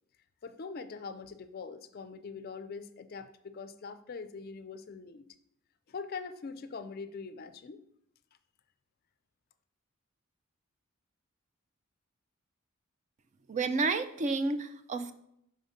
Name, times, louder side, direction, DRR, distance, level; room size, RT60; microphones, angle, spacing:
voice 1, 0.4-5.3 5.9-7.8, left 5 dB, 45° left, 11 dB, 0.4 m, -43 dB
voice 2, 13.5-15.1, right 3 dB, 35° right, 10 dB, 0.4 m, -30 dB
5.4 x 3.9 x 5.0 m, 0.72 s
head